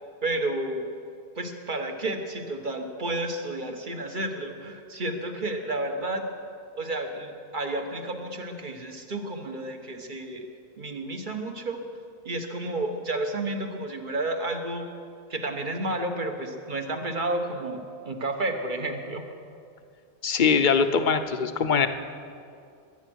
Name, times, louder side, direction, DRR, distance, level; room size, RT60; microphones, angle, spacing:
voice 1, 0.2-0.8 1.3-6.2 6.7-10.4 10.8-11.8 12.2-14.9 15.3-19.3, right 2 dB, 45° right, 5 dB, 1.4 m, -31 dB
voice 2, 20.2-21.9, left 6 dB, 50° left, 9 dB, 0.9 m, -22 dB
22.0 x 9.1 x 6.3 m, 2.4 s
omnidirectional pair, 1.1 m